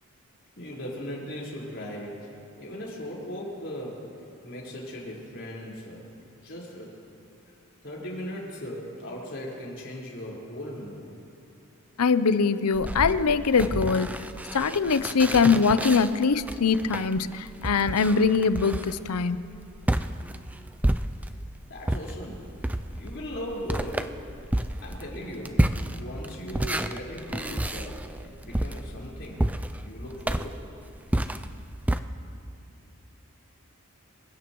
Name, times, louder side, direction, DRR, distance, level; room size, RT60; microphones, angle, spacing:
voice 1, 0.6-6.1 6.4-7.0 7.8-11.1 21.7-24.3 24.8-29.4 29.8-30.5, equal, 55° left, -5 dB, 4.6 m, -38 dB
voice 2, 12.0-14.1 14.5-19.4, left 5 dB, 90° left, 13 dB, 0.6 m, -22 dB
sound 1, 12.7-21.5 21.8-32.0, right 1 dB, 5° right, 0.3 m, -30 dB
27.5 x 16.5 x 3.1 m, 2.6 s
head